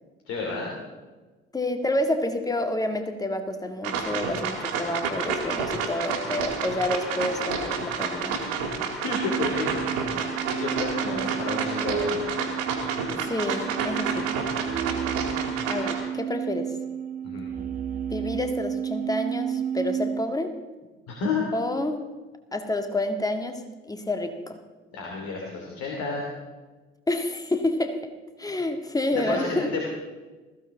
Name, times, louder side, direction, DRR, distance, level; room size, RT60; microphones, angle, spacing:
voice 1, 0.3-0.7 9.0-9.9 10.5-12.3 17.2-17.5 21.1-21.4 24.9-26.2 29.1-29.8, left 4 dB, 55° left, -1 dB, 3.0 m, -30 dB
voice 2, 1.5-8.4 11.1-11.3 13.2-14.3 15.7-16.7 18.1-20.6 21.5-22.1 22.5-24.6 27.1-28.0 28.4-29.8, left 1 dB, 10° left, 6 dB, 1.8 m, -29 dB
sound 1, 3.8-16.0, right 5 dB, 65° right, 2.6 m, -29 dB
sound 2, 9.1-20.3, right 8 dB, 30° right, 1.1 m, -32 dB
20.0 x 15.0 x 3.8 m, 1.3 s
figure-of-eight pair, 50°, 29 cm